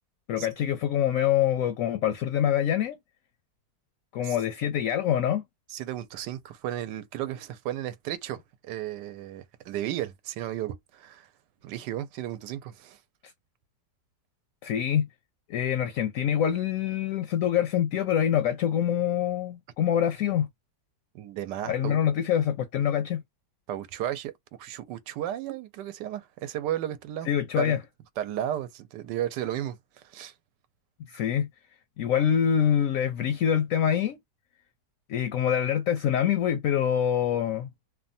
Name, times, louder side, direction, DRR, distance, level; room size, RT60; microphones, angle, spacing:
voice 1, 0.3-3.0 4.1-5.4 14.6-15.1 15.5-20.5 21.7-23.2 27.3-27.8 31.1-31.5 32.0-34.2 35.1-37.7, left 9 dB, 70° left, 0.8 m, -25 dB
voice 2, 5.7-11.3 11.6-13.0 21.1-22.0 23.7-24.3 24.6-27.3 27.6-27.8 28.2-29.8 30.0-30.3, right 12 dB, 90° right, 1.2 m, -34 dB
3.1 x 2.2 x 2.5 m
omnidirectional pair, 1.8 m